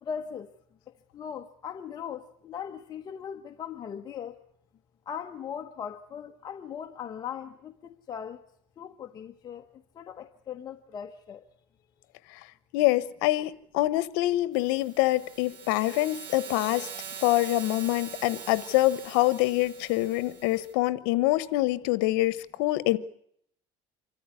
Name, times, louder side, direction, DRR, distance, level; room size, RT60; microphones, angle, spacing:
voice 1, 0.0-0.5 1.1-4.4 5.1-8.4 8.8-9.7 9.9-11.5, left 8 dB, 40° left, 1.2 m, -39 dB
voice 2, 12.7-16.9 17.2-23.0, left 17 dB, 85° left, 1.1 m, -25 dB
sound 1, 14.6-20.7, right 7 dB, 55° right, 5.7 m, -43 dB
25.5 x 14.5 x 9.6 m
cardioid pair, 120°, 11 cm